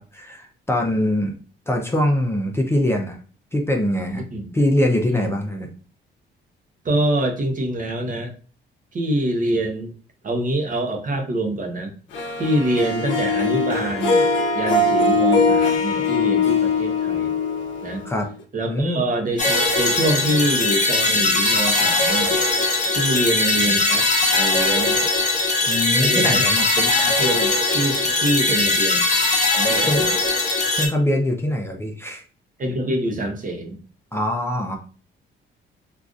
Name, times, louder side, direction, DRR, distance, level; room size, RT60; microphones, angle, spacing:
voice 1, 0.0-1.3 1.7-3.2 3.5-4.2 4.5-5.7 18.0-18.3 18.7-19.0 25.7-26.6 29.9-30.0 30.7-32.2 34.1-34.8, left 1 dB, 10° left, 1 dB, 0.5 m, -22 dB
voice 2, 6.8-8.3 8.9-9.9 10.2-11.9 12.4-17.3 17.8-18.0 18.5-22.4 22.9-25.0 26.0-29.1 29.6-30.2 32.6-33.8, right 1 dB, 40° right, 3 dB, 0.8 m, -25 dB
Harp, 12.1-18.4, left 3 dB, 70° left, 0.7 m, -21 dB
sound 1, 19.4-30.9, left 2 dB, 35° left, 0.9 m, -20 dB
3.7 x 2.4 x 2.4 m, 0.39 s
cardioid pair, 90°, 20 cm